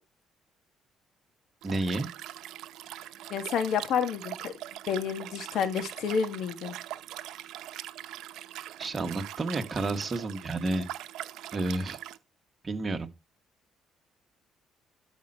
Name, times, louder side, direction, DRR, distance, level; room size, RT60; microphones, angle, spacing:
voice 1, 1.6-2.1 8.8-10.8 11.5-12.0 12.6-13.1, right 2 dB, 30° right, 1.8 m, -30 dB
Liquid, 1.6-12.2, right 13 dB, 80° right, 0.8 m, -42 dB
voice 2, 3.3-4.5 4.9-6.7, left 7 dB, 70° left, 1.7 m, -29 dB
12.5 x 5.6 x 2.9 m
cardioid pair, 85°, 0 cm